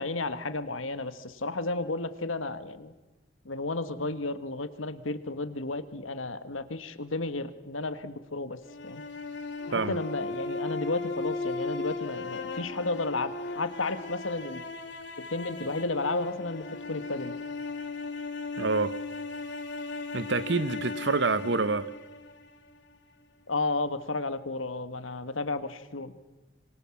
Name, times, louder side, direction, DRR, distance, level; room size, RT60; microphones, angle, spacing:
voice 1, 0.0-2.9 3.4-8.6 8.8-9.0 9.7-14.6 15.3-17.3 23.5-26.1, left 3 dB, 85° left, 1.6 m, -32 dB
sound 1, 8.6-22.8, left 3 dB, 60° left, 2.7 m, -37 dB
voice 2, 18.6-18.9 20.1-21.9, right 3 dB, 60° right, 1.0 m, -27 dB
26.0 x 23.5 x 7.3 m
head